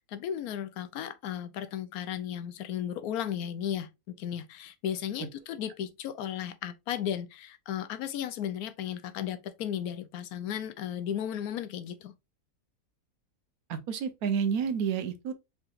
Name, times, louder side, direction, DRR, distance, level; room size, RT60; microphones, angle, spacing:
voice 1, 0.1-12.2, left 10 dB, 90° left, 1.1 m, -35 dB
voice 2, 13.7-15.3, right 7 dB, 85° right, 1.3 m, -30 dB
4.8 x 3.5 x 2.5 m
omnidirectional pair, 1.5 m